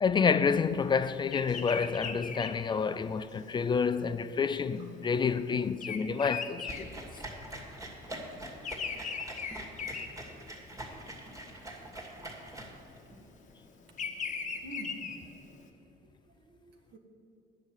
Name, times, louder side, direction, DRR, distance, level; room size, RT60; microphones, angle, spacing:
voice 1, 0.0-6.9, left 5 dB, 25° left, 0.4 m, -29 dB
Bird vocalization bird call bird song, 1.3-7.7 8.0-10.8 11.3-11.7 12.6-15.6, left 6 dB, 45° left, 1.2 m, -39 dB
sound 1, 6.7-13.2, right 1 dB, 20° right, 2.4 m, -44 dB
voice 2, 14.6-15.6 16.0-17.0, right 1 dB, 80° right, 1.7 m, -49 dB
10.5 x 6.3 x 9.1 m
cardioid pair, 110°, 17 cm